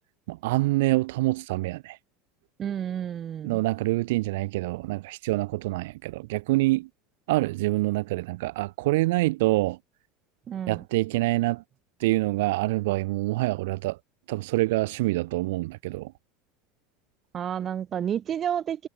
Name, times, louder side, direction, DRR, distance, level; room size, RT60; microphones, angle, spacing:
voice 1, 0.3-2.0 3.4-6.9 7.3-9.8 10.7-11.6 12.0-14.0 14.3-16.1, right 20 dB, 85° right, 6.1 m, -26 dB
voice 2, 2.6-3.6 10.5-10.8 17.3-18.9, right 9 dB, 25° right, 6.0 m, -30 dB
cardioid pair, 160°, 0 cm